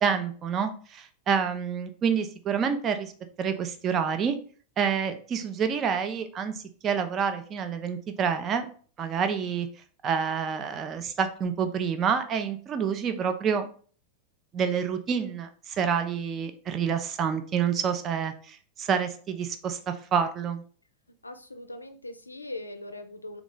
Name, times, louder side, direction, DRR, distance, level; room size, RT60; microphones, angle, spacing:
voice 1, 0.0-3.1 3.4-4.4 4.8-8.7 9.0-9.7 10.0-13.7 14.5-20.6, right 7 dB, 30° right, 8 dB, 0.5 m, -28 dB
voice 2, 21.2-23.4, left 2 dB, 80° left, 8 dB, 0.4 m, -40 dB
3.9 x 2.4 x 3.7 m, 0.43 s
figure-of-eight pair, 90°, 0 cm